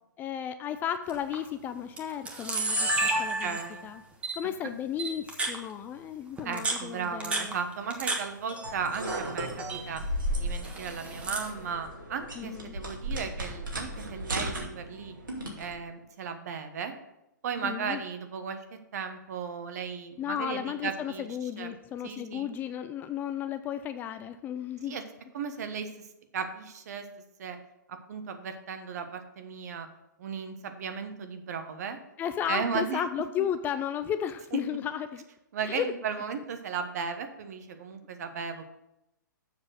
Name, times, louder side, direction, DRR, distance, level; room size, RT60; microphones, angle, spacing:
voice 1, 0.2-4.0 4.3-7.6 12.4-12.7 17.6-18.0 20.2-25.0 32.2-35.2 35.6-35.9, left 9 dB, 20° left, 10 dB, 0.4 m, -34 dB
Camera, 1.1-1.3 2.0-2.1 2.2-3.8 4.2-4.3 5.0-5.6 6.4-8.2 8.5-9.2 9.5-9.8 10.6-11.5, right 2 dB, 10° right, 1.3 m, -30 dB
voice 2, 3.1-3.9 6.4-10.0 10.4-15.1 15.6-16.9 17.4-18.6 18.9-21.3 21.6-21.7 22.0-22.5 24.9-25.0 25.3-25.9 26.3-27.0 27.4-27.6 28.1-29.9 30.2-32.0 32.5-33.0 35.5-38.6, right 6 dB, 55° right, 8 dB, 1.2 m, -35 dB
sound 1, 8.6-15.7, right 1 dB, 80° right, 2.5 m, -35 dB
7.3 x 6.1 x 6.3 m, 0.88 s
figure-of-eight pair, 125°, 11 cm